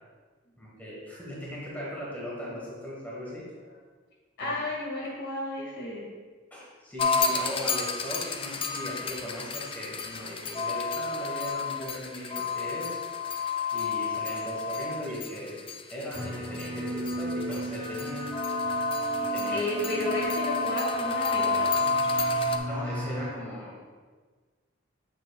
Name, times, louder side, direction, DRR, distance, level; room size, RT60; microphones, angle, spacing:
voice 1, 0.6-3.4 4.4-4.5 6.5-13.0 13.7-15.6 15.9-18.3 19.2-19.6 21.2-21.3 22.6-23.9, equal, 10° left, -6 dB, 1.2 m, -38 dB
voice 2, 4.4-6.1 19.5-21.7, left 1 dB, 55° left, -4 dB, 1.8 m, -32 dB
sound 1, 7.0-22.6, left 3 dB, 25° left, 0.3 m, -30 dB
sound 2, 16.1-23.3, equal, 10° right, 1.7 m, -35 dB
7.2 x 7.0 x 2.3 m, 1.4 s
head